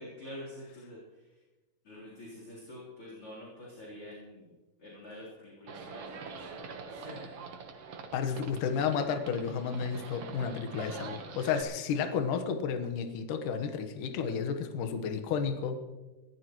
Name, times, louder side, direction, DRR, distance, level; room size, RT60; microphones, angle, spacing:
voice 1, 0.0-1.4 1.8-4.5 4.8-6.5 6.9-7.4, left 1 dB, 35° left, -5 dB, 4.3 m, -47 dB
Livestock farm animals working animals, 5.7-11.6, right 5 dB, 75° right, 1.4 m, -44 dB
voice 2, 8.1-15.8, left 6 dB, 65° left, 6 dB, 2.4 m, -32 dB
24.5 x 14.5 x 3.1 m, 1.1 s
omnidirectional pair, 4.8 m